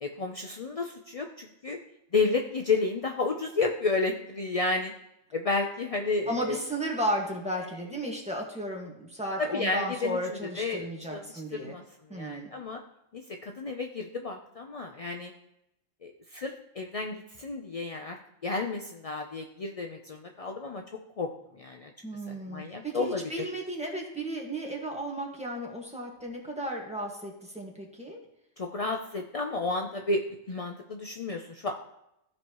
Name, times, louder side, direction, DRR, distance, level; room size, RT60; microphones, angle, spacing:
voice 1, 0.0-1.8 2.1-4.9 5.3-6.6 9.4-11.2 11.5-11.8 12.1-12.8 13.1-15.3 16.0-18.2 18.4-20.8 21.2-21.9 22.3-23.5 28.6-30.2 30.5-31.8, left 3 dB, 50° left, 3 dB, 0.4 m, -31 dB
voice 2, 6.3-11.7 12.1-12.5 22.0-28.2, right 1 dB, 5° right, -1 dB, 1.5 m, -34 dB
15.0 x 5.4 x 3.0 m, 0.83 s
omnidirectional pair, 1.5 m